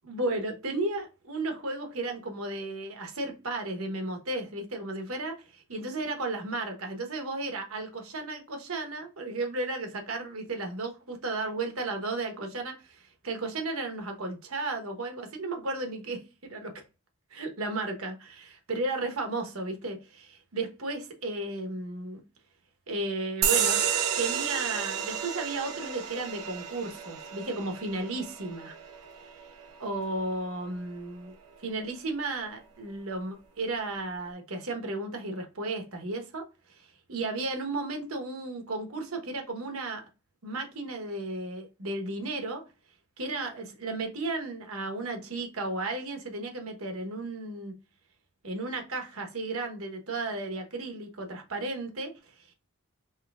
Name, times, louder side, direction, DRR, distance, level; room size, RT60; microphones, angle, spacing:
voice 1, 0.0-16.7 17.3-22.2 22.9-28.7 29.8-31.3 31.6-40.0 40.4-42.6 43.2-47.7 48.4-52.5, right 2 dB, 70° right, 1.1 m, -34 dB
sound 1, 23.4-30.5, right 8 dB, 90° right, 0.7 m, -31 dB
5.6 x 2.8 x 2.4 m
head